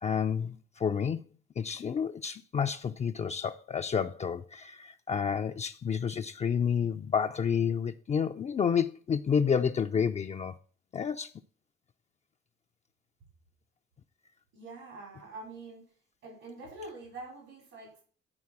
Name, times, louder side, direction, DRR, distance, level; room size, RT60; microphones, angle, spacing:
voice 1, 0.0-1.2 1.6-10.5 10.9-11.3, left 7 dB, 35° left, 0.4 m, -30 dB
voice 2, 14.5-15.9 16.2-18.0, right 2 dB, 85° right, 5.0 m, -45 dB
9.6 x 4.7 x 5.9 m
cardioid pair, 90°, 20 cm